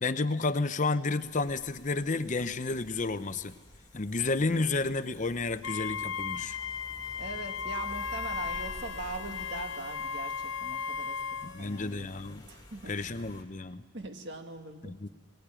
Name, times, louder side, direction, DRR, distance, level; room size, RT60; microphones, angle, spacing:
voice 1, 0.0-3.6 3.9-6.6 11.4-12.4 12.9-13.8 14.8-15.1, left 3 dB, 35° left, 12 dB, 0.7 m, -31 dB
sound 1, 1.2-13.4, left 1 dB, 20° left, 2.0 m, -51 dB
Wind instrument woodwind instrument, 5.6-11.5, left 6 dB, 80° left, 0.7 m, -36 dB
voice 2, 7.2-11.2 11.6-12.1 12.4-13.1 13.9-15.0, right 2 dB, 55° right, 5 dB, 1.7 m, -41 dB
Harmonica, 7.8-12.6, left 6 dB, 55° left, 1.2 m, -48 dB
20.0 x 19.0 x 8.9 m, 1.4 s
head